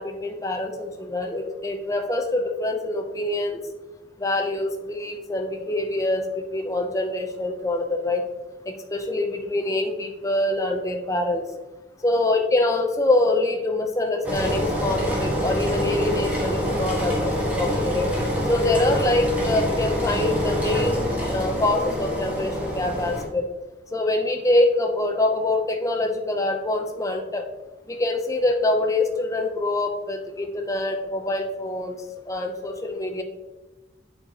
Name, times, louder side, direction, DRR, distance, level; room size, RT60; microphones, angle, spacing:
voice 1, 0.0-3.6 4.2-8.2 8.7-11.4 12.0-18.1 18.5-23.4 23.9-27.4 27.9-33.2, left 2 dB, 15° left, 4 dB, 0.6 m, -25 dB
Engine, 14.2-23.2, equal, 10° right, 1.3 m, -25 dB
8.1 x 4.5 x 2.9 m, 1.1 s
head